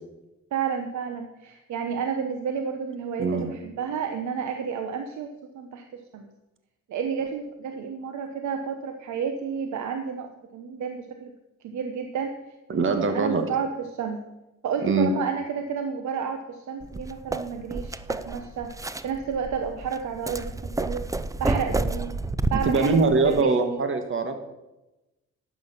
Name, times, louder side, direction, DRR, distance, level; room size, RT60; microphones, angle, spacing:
voice 1, 0.5-6.3 6.9-11.3 11.6-12.3 12.7-14.2 14.6-18.7 19.0-21.1 21.4-22.1 22.5-23.8, right 6 dB, 70° right, 6 dB, 1.1 m, -31 dB
voice 2, 12.7-13.4 14.8-15.1 22.5-24.3, right 4 dB, 40° right, 7 dB, 1.6 m, -22 dB
sound 1, 16.8-23.4, right 2 dB, 10° right, 0.5 m, -30 dB
12.0 x 9.0 x 5.8 m, 0.99 s
cardioid pair, 90°, 30 cm